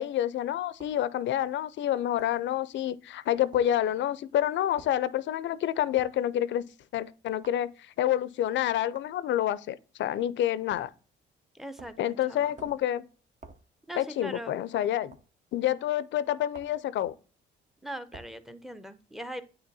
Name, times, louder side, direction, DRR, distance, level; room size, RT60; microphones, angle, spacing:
voice 1, 0.0-6.6 6.9-10.9 12.0-13.1 14.0-15.2 15.5-17.2, left 11 dB, 70° left, 0.5 m, -28 dB
sound 1, 0.8-1.0 2.2-2.4 3.5-3.7 4.8-5.0 6.0-6.2 7.4-7.7 8.9-9.1 10.7-11.0 11.8-12.1 12.6-12.9 13.4-13.7 15.1-15.3 16.5-16.8 18.1-18.4, right 3 dB, 40° right, 0.9 m, -50 dB
voice 2, 11.5-12.6 13.9-14.6 17.8-19.4, right 1 dB, ahead, 0.6 m, -41 dB
8.8 x 3.0 x 4.0 m
cardioid pair, 90°, 20 cm